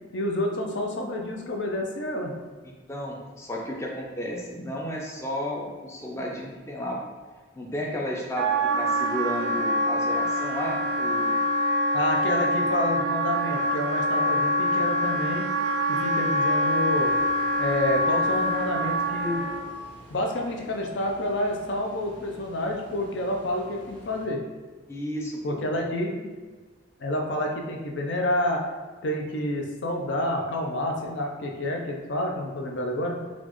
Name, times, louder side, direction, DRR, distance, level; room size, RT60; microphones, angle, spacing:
voice 1, 0.1-2.3 11.9-15.4 15.9-17.1 17.6-19.4 20.1-24.4 25.4-26.3 27.0-28.6 29.0-33.2, left 1 dB, 65° left, 1 dB, 0.5 m, -29 dB
voice 2, 2.6-7.0 7.5-11.4 24.9-25.6, equal, 15° left, -2 dB, 0.5 m, -33 dB
Wind instrument woodwind instrument, 8.4-19.7, equal, 65° right, 0.3 m, -25 dB
sound 1, 16.9-24.3, equal, 30° left, 1.0 m, -50 dB
4.1 x 2.4 x 3.0 m, 1.3 s
head